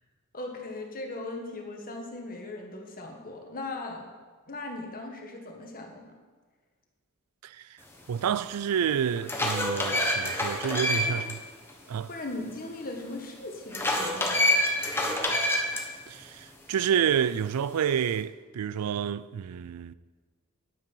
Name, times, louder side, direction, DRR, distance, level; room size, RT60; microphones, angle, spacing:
voice 1, 0.3-4.0 4.5-6.2 11.0-11.3 12.1-14.5, left 2 dB, 40° left, 1.7 m, -38 dB
voice 2, 8.1-11.4 11.9-12.1 16.1-19.9, right 8 dB, 85° right, 0.4 m, -29 dB
sound 1, 8.3-8.4 9.0-11.3 11.7-11.8 13.7-15.8, left 1 dB, 10° left, 1.3 m, -26 dB
10.0 x 8.8 x 5.6 m
head